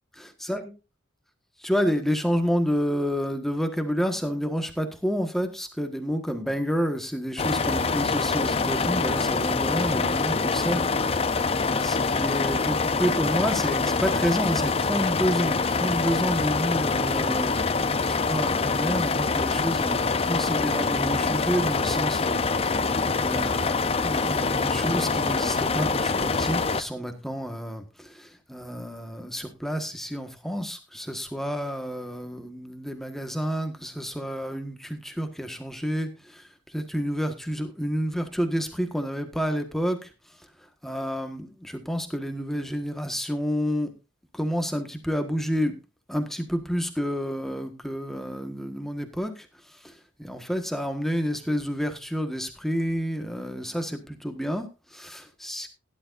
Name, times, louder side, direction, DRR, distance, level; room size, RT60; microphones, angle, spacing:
voice 1, 0.2-0.7 1.6-11.4 11.8-17.6 18.1-22.9 23.2-43.9 44.3-45.8 46.1-55.8, equal, ahead, 6 dB, 1.5 m, -29 dB
sound 1, 7.4-26.8, left 4 dB, 30° left, 0.6 m, -25 dB
16.5 x 11.0 x 2.6 m, 0.26 s
head